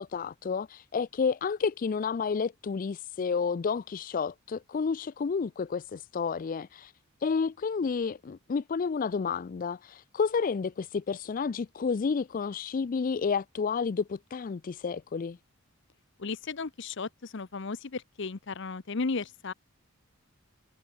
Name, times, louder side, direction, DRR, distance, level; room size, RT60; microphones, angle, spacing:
voice 1, 0.0-6.9 7.2-15.4, left 5 dB, 40° left, 0.4 m, -30 dB
voice 2, 16.2-19.5, left 4 dB, 60° left, 0.8 m, -35 dB
head